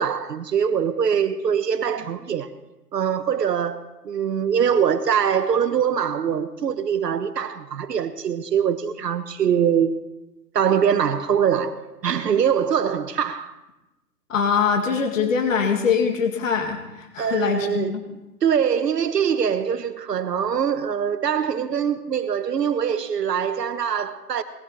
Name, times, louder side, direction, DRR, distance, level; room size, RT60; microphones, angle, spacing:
voice 1, 0.0-2.5 2.9-9.9 10.5-13.5 17.2-18.0 18.4-24.4, right 8 dB, 70° right, 1.3 m, -23 dB
voice 2, 14.3-18.0, left 6 dB, 50° left, 2.3 m, -23 dB
19.5 x 14.5 x 4.2 m
hypercardioid pair, 170°, 50 cm